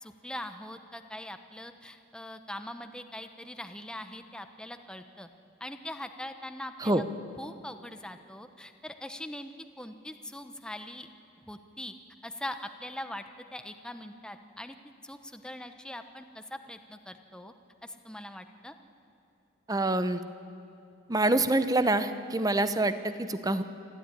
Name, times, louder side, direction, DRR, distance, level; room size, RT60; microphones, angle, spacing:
voice 1, 0.0-5.3 5.6-7.0 7.4-9.5 9.8-11.1 11.5-11.9 12.2-13.2 13.5-17.5 17.8-18.7, left 1 dB, 5° left, 8 dB, 1.0 m, -42 dB
voice 2, 19.7-20.2 21.1-23.6, right 2 dB, 20° right, 11 dB, 0.9 m, -26 dB
26.5 x 13.5 x 9.9 m, 2.8 s
head